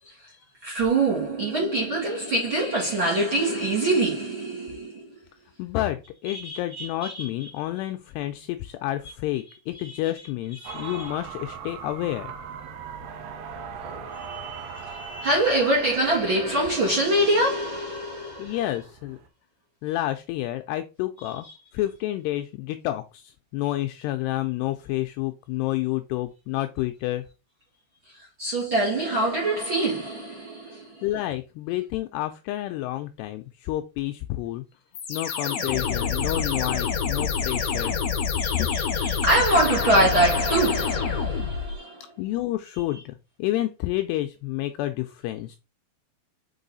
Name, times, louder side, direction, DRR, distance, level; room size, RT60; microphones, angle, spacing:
voice 1, 0.6-5.2 6.3-7.5 9.8-10.0 10.6-11.1 13.8-18.6 28.2-31.0 38.4-42.0, right 1 dB, 40° right, 2.0 m, -25 dB
voice 2, 5.6-12.3 18.4-19.2 19.8-21.5 21.7-27.3 30.7-34.6 35.1-38.0 38.6-38.7 42.2-45.6, left 15 dB, 85° left, 2.4 m, -29 dB
sound 1, 10.6-19.3, right 6 dB, 85° right, 1.9 m, -40 dB
sound 2, 34.9-41.8, left 6 dB, 60° left, 1.9 m, -27 dB
6.0 x 5.6 x 4.0 m
omnidirectional pair, 5.2 m